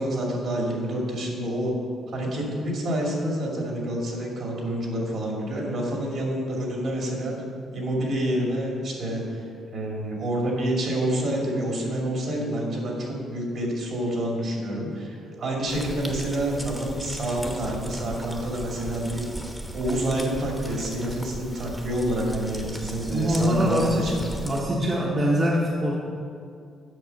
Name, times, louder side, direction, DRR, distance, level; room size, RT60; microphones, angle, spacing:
voice 1, 0.0-1.7 2.1-7.3 7.7-9.4 9.7-19.3 19.7-24.1, right 1 dB, 65° right, -1 dB, 2.5 m, -28 dB
sound 1, 15.7-24.6, right 1 dB, 5° right, 1.0 m, -37 dB
voice 2, 23.1-26.0, equal, 35° right, -4 dB, 1.1 m, -23 dB
7.9 x 6.0 x 5.8 m, 2.3 s
cardioid pair, 90°, 0 cm